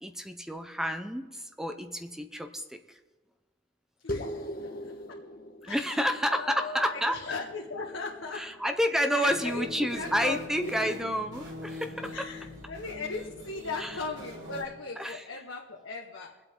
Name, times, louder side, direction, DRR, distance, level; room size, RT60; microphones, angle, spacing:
voice 1, 0.0-3.0 5.6-7.2 8.3-12.1 13.8-13.9 15.0-15.2, equal, 5° right, 8 dB, 0.6 m, -30 dB
voice 2, 4.0-5.2 5.6-8.5 9.1-10.9 12.1-16.3, left 4 dB, 85° left, -1 dB, 1.3 m, -38 dB
sound 1, 4.1-8.9, left 1 dB, 45° left, 1.3 m, -41 dB
sound 2, 9.3-14.6, left 1 dB, 80° right, 4.3 m, -42 dB
24.5 x 8.3 x 3.7 m, 1.3 s
head